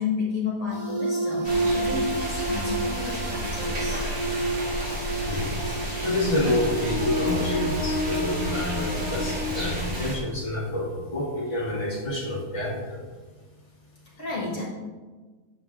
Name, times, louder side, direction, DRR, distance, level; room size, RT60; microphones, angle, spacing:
voice 1, 0.0-4.0 14.2-14.6, left 5 dB, 50° left, -4 dB, 1.9 m, -31 dB
sound 1, 0.7-9.3, right 1 dB, 65° right, 1.9 m, -30 dB
sound 2, 1.4-10.2, right 1 dB, 40° right, 2.2 m, -32 dB
voice 2, 5.2-5.6 6.0-13.0, left 1 dB, 20° left, -5 dB, 2.0 m, -28 dB
8.8 x 6.9 x 3.6 m, 1.3 s
omnidirectional pair, 1.7 m